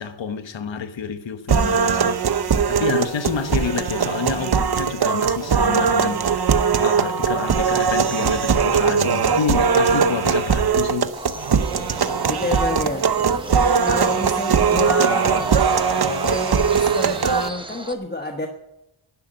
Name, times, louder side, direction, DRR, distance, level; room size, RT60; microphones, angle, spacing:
voice 1, 0.0-11.1, left 6 dB, 65° left, 1.1 m, -28 dB
sound 1, 1.5-17.5, right 6 dB, 50° right, 0.8 m, -20 dB
sound 2, 11.1-17.9, right 1 dB, 10° right, 0.9 m, -34 dB
voice 2, 12.3-13.1 13.8-15.5 16.0-18.5, left 2 dB, 20° left, 1.2 m, -28 dB
11.5 x 10.5 x 9.0 m
wide cardioid pair, 125°, 48 cm